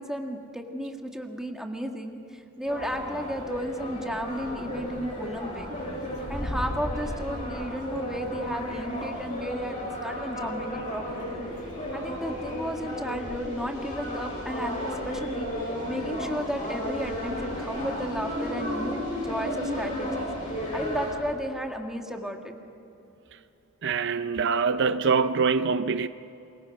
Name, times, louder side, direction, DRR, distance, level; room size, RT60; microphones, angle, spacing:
voice 1, 0.0-5.7 6.3-11.4 11.9-20.3 20.6-22.6, equal, 5° right, 1.7 m, -34 dB
sound 1, 2.7-21.2, equal, 35° left, 7.3 m, -33 dB
voice 2, 23.8-26.1, right 5 dB, 55° right, 0.5 m, -24 dB
27.0 x 22.0 x 5.3 m
head